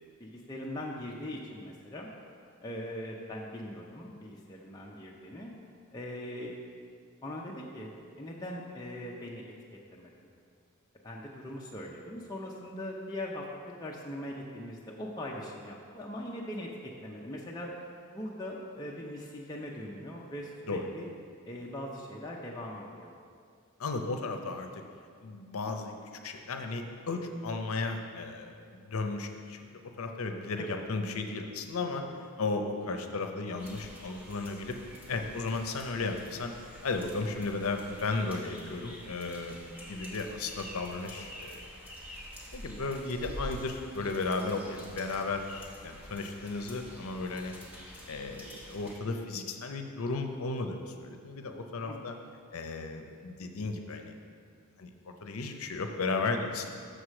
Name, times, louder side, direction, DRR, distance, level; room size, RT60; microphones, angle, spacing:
voice 1, 0.2-2.1 2.6-5.5 5.9-6.5 7.2-7.9 8.2-9.5 9.9-10.3 11.0-16.7 17.0-17.7 18.1-21.1 21.4-23.1 30.6-30.8 51.9-52.2, left 1 dB, 20° left, -3 dB, 0.5 m, -41 dB
voice 2, 23.8-24.8 25.2-25.9 26.2-32.0 32.4-34.8 35.1-36.5 36.8-41.6 42.5-47.5 48.1-52.1 52.5-54.1 54.8-56.7, left 3 dB, 75° left, 5 dB, 0.6 m, -35 dB
sound 1, 33.6-49.0, equal, 10° right, 1.1 m, -47 dB
6.4 x 4.8 x 6.2 m, 2.2 s
head